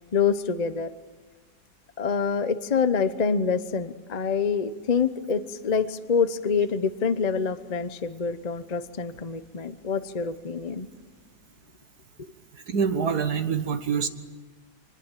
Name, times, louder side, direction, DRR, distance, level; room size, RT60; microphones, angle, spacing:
voice 1, 0.1-0.9 2.0-10.9, left 6 dB, 40° left, 11 dB, 0.5 m, -26 dB
voice 2, 12.7-14.1, right 6 dB, 60° right, 9 dB, 1.9 m, -25 dB
25.0 x 20.5 x 9.1 m, 1.4 s
omnidirectional pair, 2.0 m